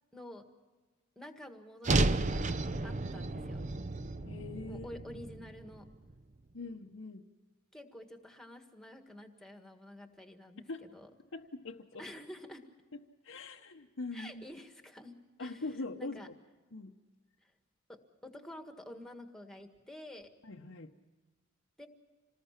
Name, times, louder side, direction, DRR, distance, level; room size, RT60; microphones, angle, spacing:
voice 1, 0.1-0.4 1.1-2.5 2.8-3.6 4.7-5.9 7.7-11.1 12.0-12.7 14.1-15.6 16.0-16.3 17.4-17.5 17.9-20.3 21.8-21.9, left 1 dB, ahead, 5 dB, 1.7 m, -49 dB
sound 1, 1.8-6.1, right 2 dB, 35° right, 0.6 m, -32 dB
voice 2, 4.2-4.9 6.5-7.2 10.7-10.8 11.3-12.0 12.9-14.4 15.4-16.3 16.7-16.9 20.4-20.9, left 3 dB, 60° left, 0 dB, 0.9 m, -42 dB
27.5 x 19.5 x 5.9 m, 1.3 s
head